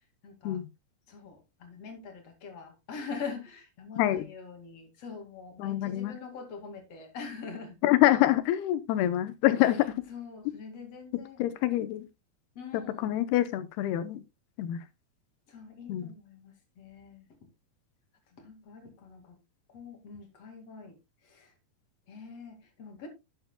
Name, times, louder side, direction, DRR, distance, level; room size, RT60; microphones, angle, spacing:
voice 1, 0.2-0.6 1.1-7.8 9.5-11.9 12.5-13.2 15.5-17.4 18.3-19.4 19.7-21.0 21.2-21.5 22.1-23.1, left 5 dB, 45° left, 3.1 m, -44 dB
voice 2, 4.0-4.3 5.6-6.1 7.8-9.9 11.4-12.0 12.7-14.2 14.6-14.8 15.9-16.1, left 14 dB, 85° left, 2.9 m, -26 dB
11.5 x 9.5 x 2.3 m
omnidirectional pair, 4.5 m